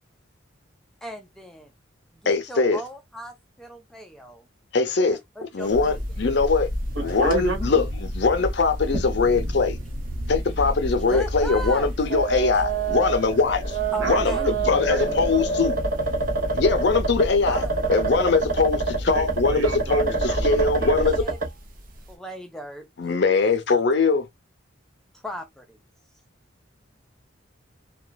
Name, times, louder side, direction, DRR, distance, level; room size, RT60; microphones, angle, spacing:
voice 1, 1.0-1.7 2.2-4.5 5.1-6.0 11.1-11.9 13.9-14.5 17.5-17.8 20.9-21.4 22.1-22.9 25.1-25.8, equal, ahead, 0.3 m, -37 dB
voice 2, 2.3-2.8 4.7-5.2 5.5-6.7 7.0-9.8 10.3-13.8 14.1-15.7 16.5-17.6 17.9-21.2 23.0-24.3, left 4 dB, 55° left, 0.5 m, -22 dB
sound 1, 5.6-6.1 6.4-6.5 7.0-7.4 8.0-8.1 8.9-9.1 9.5-9.6 10.7-10.8 12.0-21.6, right 4 dB, 45° right, 0.7 m, -27 dB
sound 2, 5.7-21.2, equal, 90° right, 0.9 m, -32 dB
voice 3, 6.9-7.9 14.0-15.3 19.1-21.0, right 4 dB, 65° right, 1.1 m, -32 dB
2.9 x 2.2 x 2.2 m
head